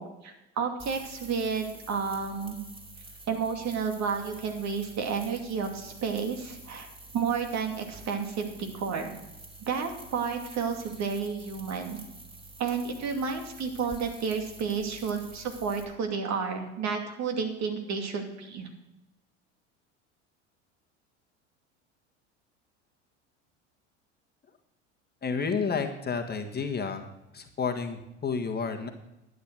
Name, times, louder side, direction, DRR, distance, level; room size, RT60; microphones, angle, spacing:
voice 1, 0.0-2.6 3.3-6.9 7.1-9.1 9.6-12.0 12.6-18.7, right 5 dB, 50° right, 4 dB, 2.6 m, -31 dB
sound 1, 0.8-15.8, right 2 dB, 15° right, 3.1 m, -48 dB
voice 2, 25.2-27.1 27.3-28.9, left 5 dB, 25° left, 5 dB, 1.7 m, -30 dB
12.0 x 9.4 x 6.2 m, 0.91 s
hypercardioid pair, 80°, 36 cm